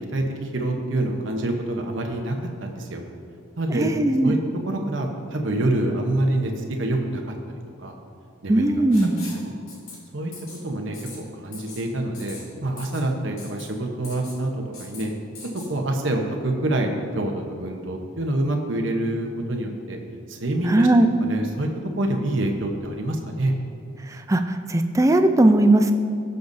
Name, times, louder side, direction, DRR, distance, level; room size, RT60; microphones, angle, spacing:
voice 1, 0.0-3.0 3.6-3.9 4.2-4.4 4.7-7.2 7.8-7.9 8.4-8.6 9.4-9.5 10.1-10.3 10.6-12.4 12.6-14.5 14.8-15.1 15.7-20.0 20.3-20.9 21.2-21.7 22.0-23.5, right 1 dB, 65° right, 2 dB, 0.9 m, -26 dB
voice 2, 3.7-4.3 8.5-9.2 20.7-21.1 24.1-25.9, right 1 dB, 15° right, 7 dB, 0.4 m, -18 dB
Writing, 8.9-9.4 9.7-10.0 10.3-10.6 10.9-11.2 11.5-11.8 12.1-12.4 12.8-13.0 13.4-13.7 14.0-14.4 14.7-15.0 15.4-15.7, left 4 dB, 85° left, 2.5 m, -41 dB
17.5 x 6.7 x 2.7 m, 2.3 s
head